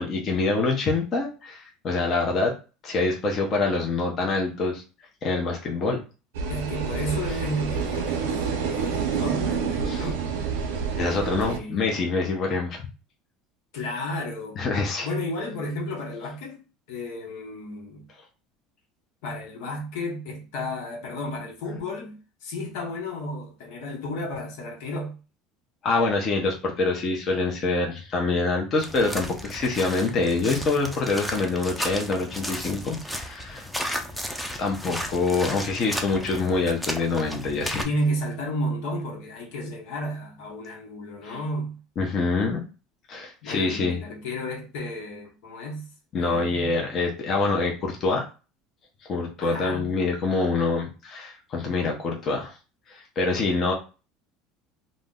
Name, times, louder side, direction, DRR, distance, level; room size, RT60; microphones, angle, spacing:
voice 1, 0.0-2.5 2.8-4.8 5.2-6.0 9.9-10.1 11.0-12.8 14.6-15.1 25.8-33.7 34.6-37.9 41.2-41.4 42.0-42.6 43.1-44.0 46.1-48.2 49.0-52.5 52.9-53.7, left 3 dB, 40° left, 0.7 m, -25 dB
sound 1, 6.3-11.6, right 6 dB, 85° right, 0.6 m, -28 dB
voice 2, 6.5-10.2 11.1-12.0 13.7-14.6 15.0-16.6 16.9-18.1 19.2-25.2 37.8-41.8 43.4-46.7 49.4-49.9, left 1 dB, 75° left, 0.9 m, -32 dB
sound 2, 28.8-37.8, equal, ahead, 0.5 m, -34 dB
2.5 x 2.1 x 3.5 m
supercardioid pair, 110°, 0 cm